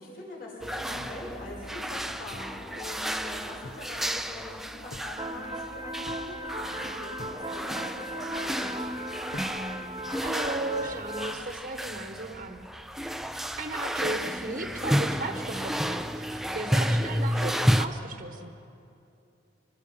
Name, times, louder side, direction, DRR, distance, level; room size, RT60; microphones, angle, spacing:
voice 1, 0.0-8.7, left 1 dB, 55° left, -3 dB, 5.4 m, -43 dB
sound 1, 0.6-17.9, equal, ahead, 0.5 m, -31 dB
sound 2, 0.9-2.6 2.9-3.0 3.4-3.9 4.3-5.1 5.4-7.4 7.7-8.4 8.9-9.6, left 1 dB, 75° left, 1.1 m, -47 dB
sound 3, 5.2-11.4, right 1 dB, 25° right, 0.8 m, -37 dB
voice 2, 10.2-12.7 13.0-13.1 13.6-18.5, right 2 dB, 45° right, 5 dB, 1.1 m, -36 dB
25.0 x 19.5 x 5.7 m, 2.7 s
head